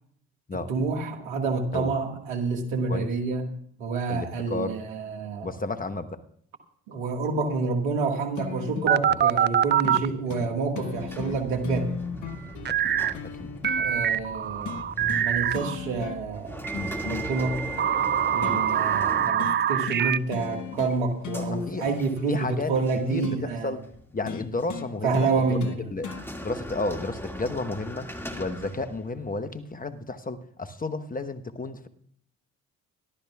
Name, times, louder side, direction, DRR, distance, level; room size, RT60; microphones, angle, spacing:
voice 1, 0.5-3.4 3.8-5.5 6.9-11.9 13.8-14.8 15.2-16.7 17.0-17.6 18.3-23.8 25.0-25.7, right 4 dB, 85° right, 3 dB, 1.9 m, -28 dB
voice 2, 4.1-4.8 5.4-6.2 9.1-9.2 9.9-10.0 10.4-10.5 12.7-12.9 13.2-13.5 18.4-18.7 21.3-21.9 22.3-22.7 23.1-23.8 24.1-25.6 25.9-26.1 26.4-28.1 28.3-31.9, left 3 dB, 20° left, 10 dB, 1.1 m, -32 dB
sound 1, 8.4-9.0 9.8-10.0 10.3-10.5 10.8-13.8 14.7-15.3 15.5-16.4 16.7-18.6 19.4-19.6 19.9-20.1 20.3-21.0 21.2-23.4 24.3-26.2 27.3-27.4, left 7 dB, 50° left, 1.4 m, -37 dB
sound 2, 8.8-10.1 12.6-13.1 13.6-15.7 16.6-20.2, right 9 dB, 30° right, 0.4 m, -24 dB
sound 3, 10.9-19.9 20.4-22.6 22.8-23.1 23.8-24.7 25.9-29.3, equal, 5° left, 2.1 m, -40 dB
24.5 x 12.0 x 2.4 m, 0.63 s
hypercardioid pair, 55°, 39 cm